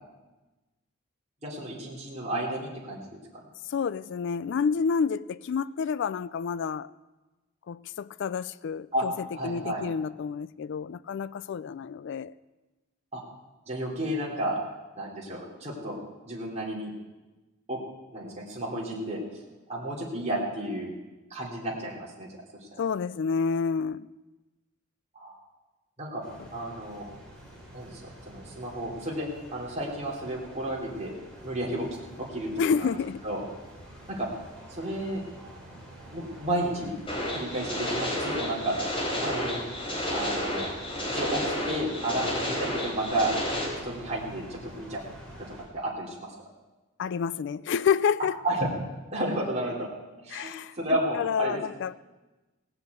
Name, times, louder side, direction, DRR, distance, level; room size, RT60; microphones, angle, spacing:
voice 1, 1.4-3.4 8.9-9.1 9.3-9.8 13.1-13.2 13.7-14.6 15.0-16.0 16.2-16.9 17.7-17.8 18.1-19.2 19.7-20.9 21.3-22.3 22.7-22.8 25.1-25.4 26.0-26.2 26.5-27.0 27.7-29.3 29.5-31.1 31.4-31.9 32.2-32.5 32.7-32.9 33.2-33.4 34.1-34.3 34.7-35.2 36.1-36.9 37.3-38.7 39.1-39.6 40.1-40.7 41.1-43.3 43.8-45.0 45.7-46.3 48.4-48.7 49.1-49.9 50.2-51.6, right 1 dB, 35° right, 3.3 m, -32 dB
voice 2, 3.7-6.9 7.7-9.1 9.4-12.3 22.8-24.1 32.6-33.2 47.0-48.4 50.3-52.0, left 6 dB, 60° left, 0.3 m, -29 dB
sound 1, 26.2-45.6, right 1 dB, 5° left, 4.2 m, -47 dB
sound 2, 37.1-43.7, left 1 dB, 25° left, 4.0 m, -31 dB
17.5 x 6.8 x 8.3 m
head